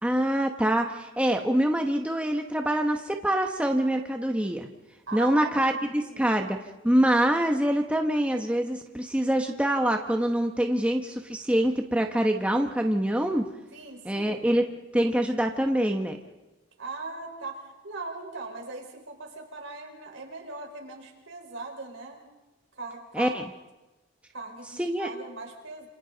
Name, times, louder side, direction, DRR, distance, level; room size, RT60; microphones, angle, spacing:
voice 1, 0.0-4.7 5.1-6.6 6.8-13.4 14.0-14.7 14.9-16.2 23.1-23.4 24.8-25.1, right 1 dB, 5° right, 3 dB, 1.0 m, -25 dB
voice 2, 5.1-5.5 5.9-6.4 13.7-14.6 16.8-22.2 22.7-23.4 24.3-25.9, right 3 dB, 70° right, 1 dB, 4.6 m, -40 dB
28.0 x 27.0 x 4.0 m, 1.0 s
head